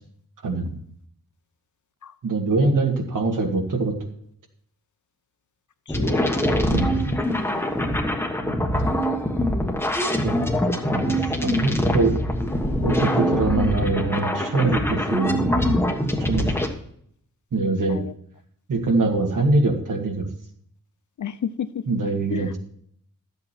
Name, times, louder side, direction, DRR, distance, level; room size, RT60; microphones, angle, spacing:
voice 1, 0.4-0.8 2.2-4.0 6.7-6.9 10.2-10.4 10.9-11.2 11.4-12.2 12.8-15.5 16.2-16.5 17.5-18.0 18.7-20.2 21.9-22.6, right 3 dB, 65° right, 3 dB, 2.1 m, -23 dB
voice 2, 5.9-6.2 6.7-6.9 8.4-8.7 9.0-9.1 16.5-16.6 17.9-18.1 21.2-21.8 22.3-22.5, left 8 dB, 60° left, 12 dB, 0.7 m, -32 dB
sound 1, 5.9-16.7, equal, 5° left, 1.4 m, -23 dB
12.5 x 8.0 x 4.4 m, 0.65 s
wide cardioid pair, 155°, 34 cm